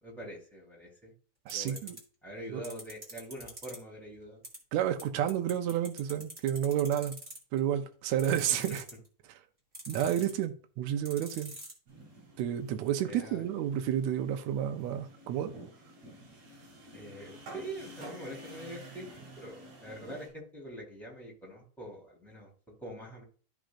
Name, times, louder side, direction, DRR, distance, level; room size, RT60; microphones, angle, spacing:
voice 1, 0.0-1.1 1.5-1.9 2.2-4.4 13.0-13.4 16.9-22.5 22.8-23.2, right 1 dB, ahead, 3.3 m, -44 dB
sound 1, 1.5-2.0 2.6-3.7 4.4-4.6 5.0-5.1 5.3-7.6 8.2-9.1 9.7-10.4 11.0-11.7, right 1 dB, 20° right, 1.8 m, -43 dB
voice 2, 1.5-2.0 2.5-2.6 4.7-7.2 7.5-8.8 9.3-9.4 9.9-11.5 12.4-15.5, right 10 dB, 75° right, 1.8 m, -30 dB
sound 2, 11.9-20.3, right 1 dB, 60° right, 4.4 m, -50 dB
13.5 x 5.0 x 2.5 m
omnidirectional pair, 3.9 m